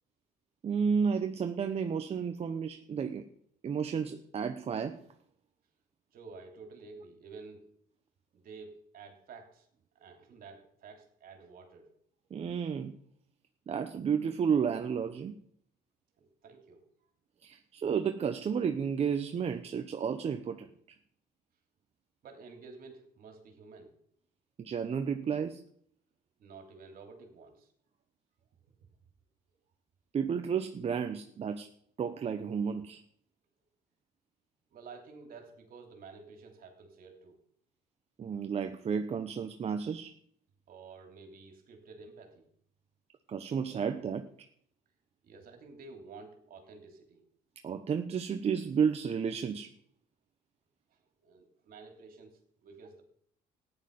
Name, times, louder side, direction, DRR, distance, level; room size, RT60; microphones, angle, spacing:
voice 1, 0.6-3.3 3.6-5.0 12.3-12.9 13.7-15.4 17.4-21.0 24.6-25.6 30.1-31.7 32.0-33.0 38.2-40.1 43.3-44.3 47.6-49.7, right 6 dB, 40° right, 7 dB, 0.9 m, -32 dB
voice 2, 6.1-7.6 8.3-9.7 9.9-11.9 16.2-16.8 22.2-23.9 26.4-27.7 34.7-37.4 40.7-42.5 45.2-47.2 51.2-53.0, right 4 dB, 60° right, 4 dB, 3.1 m, -51 dB
14.5 x 10.0 x 5.4 m, 0.65 s
cardioid pair, 110°, 17 cm